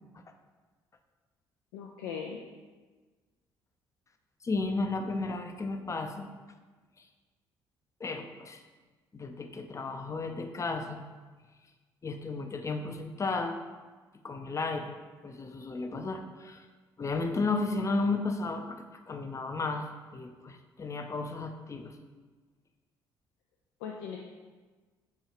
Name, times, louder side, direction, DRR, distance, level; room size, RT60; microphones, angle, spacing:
voice 1, 1.7-2.4 23.8-24.2, left 7 dB, 85° left, 0 dB, 0.4 m, -38 dB
voice 2, 4.4-6.3 8.0-8.6 9.1-11.0 12.0-13.6 14.2-15.0 15.2-16.7 17.0-21.9, left 3 dB, 30° left, 6 dB, 0.5 m, -33 dB
4.3 x 2.4 x 4.8 m, 1.4 s
hypercardioid pair, 55°, 11 cm